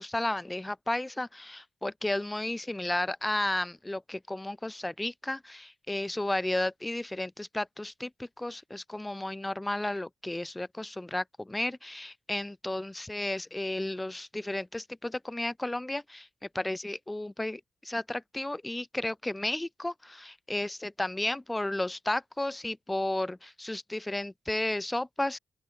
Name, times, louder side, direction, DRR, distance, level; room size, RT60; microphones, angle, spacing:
voice 1, 0.0-16.3 16.5-25.4, left 1 dB, 15° left, 1.6 m, -33 dB
open air
cardioid pair, 70°, 0 cm